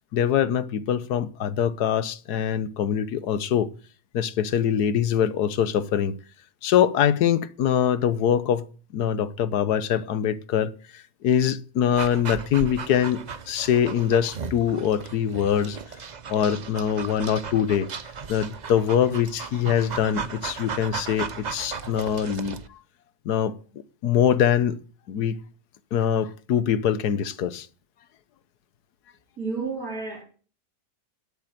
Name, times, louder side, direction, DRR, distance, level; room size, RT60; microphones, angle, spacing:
voice 1, 0.1-3.7 4.1-6.1 6.6-8.7 8.9-13.2 13.5-15.8 16.3-17.9 18.3-22.8 23.2-23.6 24.0-24.8 25.1-25.4 25.9-27.7, left 9 dB, 85° left, 1.4 m, -23 dB
Dog, 11.9-22.7, right 5 dB, 40° right, 0.6 m, -36 dB
voice 2, 29.4-30.2, right 4 dB, 65° right, 5.0 m, -31 dB
10.5 x 8.8 x 9.0 m
omnidirectional pair, 1.6 m